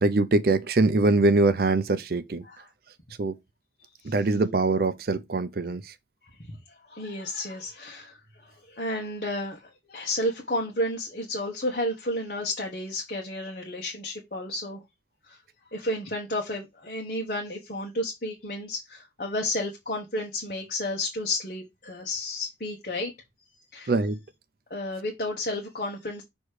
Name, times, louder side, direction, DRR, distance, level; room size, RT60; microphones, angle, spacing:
voice 1, 0.0-2.4 3.2-3.4 4.0-5.9 23.9-24.2, right 3 dB, 55° right, 0.5 m, -23 dB
voice 2, 6.4-14.8 15.3-15.4 15.7-23.1 23.7-23.9 24.7-26.2, left 1 dB, 45° left, 1.3 m, -32 dB
6.4 x 3.1 x 4.8 m
head